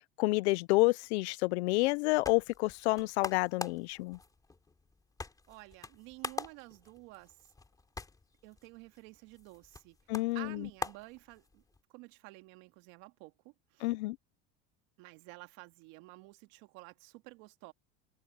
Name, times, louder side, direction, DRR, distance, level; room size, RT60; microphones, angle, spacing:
voice 1, 0.2-4.2 10.1-10.7 13.8-14.2, left 23 dB, 90° left, 0.6 m, -29 dB
sound 1, 1.8-11.8, left 3 dB, 10° left, 3.1 m, -45 dB
voice 2, 5.5-7.4 8.4-10.0 10.3-11.6 11.9-13.9 15.0-17.7, right 23 dB, 65° right, 2.2 m, -51 dB
supercardioid pair, 145°, 32 cm